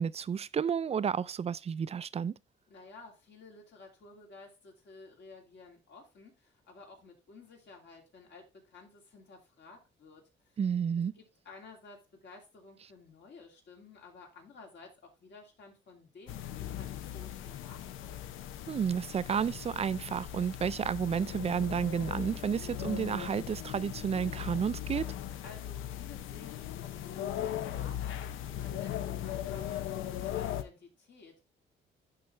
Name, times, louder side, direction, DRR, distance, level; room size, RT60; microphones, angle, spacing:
voice 1, 0.0-2.4 10.6-11.1 18.7-25.1, right 7 dB, 30° right, 0.4 m, -31 dB
voice 2, 2.7-10.6 11.2-18.3 25.4-31.5, left 3 dB, 60° left, 2.7 m, -53 dB
sound 1, 16.3-30.6, left 11 dB, 85° left, 0.6 m, -38 dB
11.5 x 4.0 x 3.3 m
cardioid pair, 90°, 20 cm